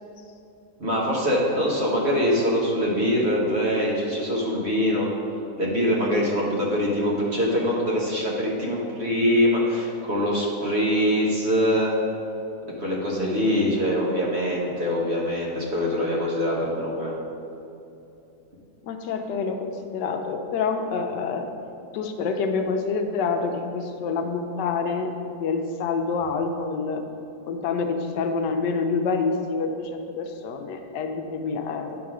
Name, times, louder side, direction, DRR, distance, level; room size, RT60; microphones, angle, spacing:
voice 1, 0.8-5.1 5.6-12.0 12.8-17.2, equal, 40° right, -4 dB, 1.4 m, -23 dB
voice 2, 18.8-21.5 21.9-27.0 27.5-32.0, left 4 dB, 80° left, 6 dB, 1.3 m, -27 dB
9.2 x 3.7 x 6.0 m, 2.8 s
omnidirectional pair, 1.8 m